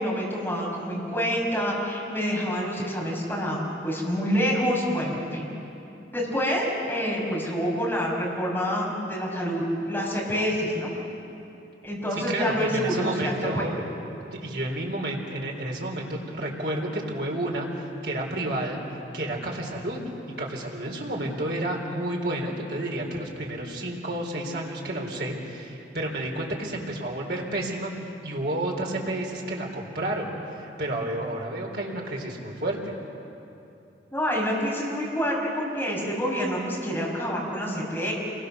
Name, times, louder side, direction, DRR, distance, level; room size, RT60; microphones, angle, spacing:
voice 1, 0.0-5.5 6.1-10.9 11.8-13.7 34.1-38.1, equal, 10° left, -4 dB, 5.6 m, -27 dB
voice 2, 12.3-13.8 14.3-18.8 19.1-20.0 20.4-32.9, right 1 dB, 60° right, 0 dB, 3.8 m, -31 dB
28.0 x 23.0 x 6.7 m, 2.8 s
head